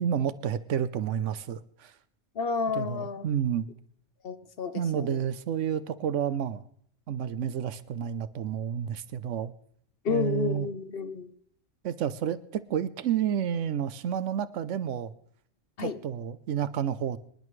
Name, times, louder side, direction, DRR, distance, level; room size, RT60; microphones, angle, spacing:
voice 1, 0.0-1.9 2.7-3.7 4.7-6.6 7.1-9.5 10.1-10.7 11.8-15.1 15.8-17.2, right 9 dB, 75° right, 13 dB, 1.0 m, -30 dB
voice 2, 2.4-3.2 4.2-5.2 10.0-11.3 15.8-16.0, left 5 dB, 55° left, 11 dB, 1.0 m, -31 dB
25.5 x 11.0 x 3.2 m, 0.64 s
omnidirectional pair, 1.3 m